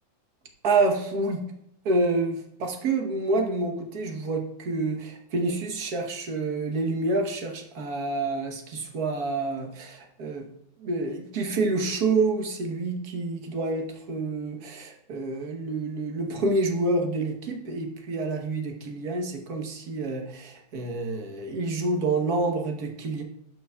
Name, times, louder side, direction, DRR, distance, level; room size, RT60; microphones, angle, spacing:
voice 1, 0.6-1.4 1.8-10.5 10.8-23.2, right 3 dB, 50° right, 3 dB, 1.4 m, -28 dB
12.0 x 6.1 x 2.3 m, 0.75 s
omnidirectional pair, 2.4 m